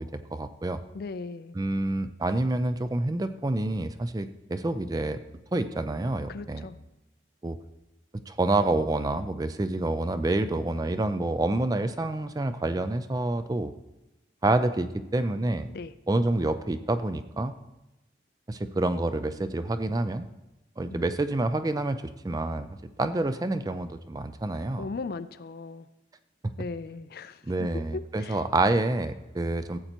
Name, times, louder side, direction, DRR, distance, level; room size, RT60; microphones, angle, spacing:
voice 1, 0.0-0.8 1.5-5.2 5.5-6.7 7.4-7.6 8.3-13.7 14.4-15.7 16.1-17.5 18.5-20.3 20.8-22.7 23.0-24.9 27.4-29.8, right 2 dB, 20° right, 11 dB, 0.3 m, -28 dB
voice 2, 0.9-1.6 6.3-6.8 15.7-15.9 20.9-21.1 24.8-25.9 26.6-27.7 27.9-28.4, left 4 dB, 50° left, 14 dB, 0.4 m, -38 dB
14.5 x 7.9 x 2.9 m, 0.98 s
head